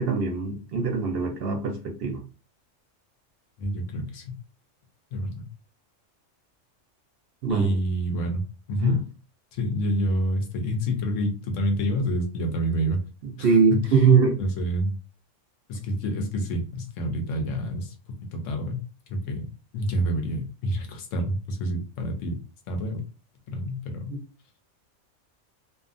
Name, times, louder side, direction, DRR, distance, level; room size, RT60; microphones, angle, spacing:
voice 1, 0.0-2.2 7.4-7.7 8.8-9.0 13.2-14.4 24.1-24.2, right 5 dB, 60° right, 3 dB, 0.7 m, -22 dB
voice 2, 3.6-4.4 5.1-5.4 7.5-8.4 8.7-9.0 9.5-13.0 13.4-14.1 14.4-15.0 15.7-19.5 19.7-22.4 22.7-23.0 23.5-24.2, equal, 85° left, 4 dB, 1.0 m, -28 dB
2.6 x 2.3 x 2.5 m, 0.34 s
omnidirectional pair, 1.3 m